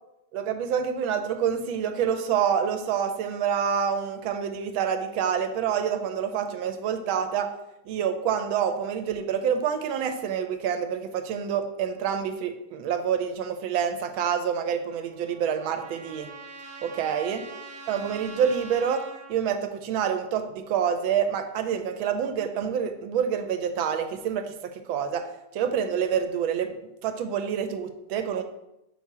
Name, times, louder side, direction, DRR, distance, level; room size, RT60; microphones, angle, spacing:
voice 1, 0.3-7.5 7.9-16.3 16.8-17.4 17.9-25.3 25.5-26.7 27.0-28.4, right 8 dB, 80° right, 8 dB, 1.3 m, -27 dB
Trumpet, 14.9-19.4, right 4 dB, 60° right, 1.0 m, -44 dB
5.6 x 4.3 x 4.7 m, 0.91 s
omnidirectional pair, 2.3 m